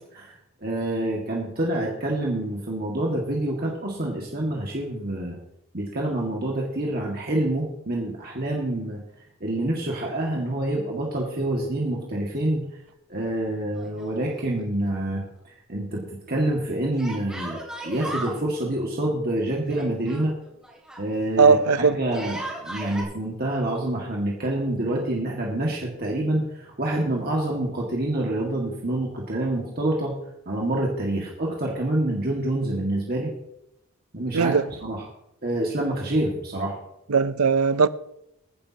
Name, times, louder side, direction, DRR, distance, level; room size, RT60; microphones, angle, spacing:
voice 1, 0.6-5.4 5.7-9.0 9.4-12.6 13.1-15.2 15.7-20.3 21.0-30.1 30.5-33.3 34.1-34.6 34.8-35.0 35.4-36.8, right 1 dB, 45° right, 2.0 m, -27 dB
Yell, 13.7-14.6 14.9-15.0 17.0-18.4 19.7-21.1 22.0-23.0, right 1 dB, 5° right, 2.6 m, -36 dB
voice 2, 21.4-22.0 34.3-34.7 37.1-37.9, right 5 dB, 75° right, 0.6 m, -18 dB
21.5 x 10.5 x 2.9 m
head